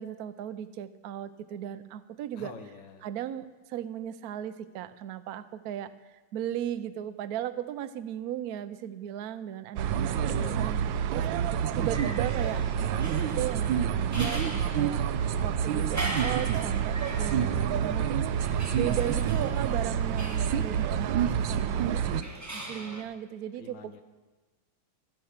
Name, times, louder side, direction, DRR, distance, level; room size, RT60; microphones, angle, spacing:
voice 1, 0.0-2.5 3.0-10.8 11.1-18.3 18.7-23.9, right 11 dB, 65° right, 13 dB, 1.0 m, -37 dB
voice 2, 2.4-3.0 10.1-10.8 23.6-24.0, left 6 dB, 75° left, 8 dB, 1.8 m, -45 dB
sound 1, 9.8-22.2, right 8 dB, 90° right, 1.3 m, -28 dB
sound 2, 11.9-23.0, right 1 dB, 10° right, 0.9 m, -40 dB
15.0 x 8.8 x 5.8 m, 1.3 s
omnidirectional pair, 2.0 m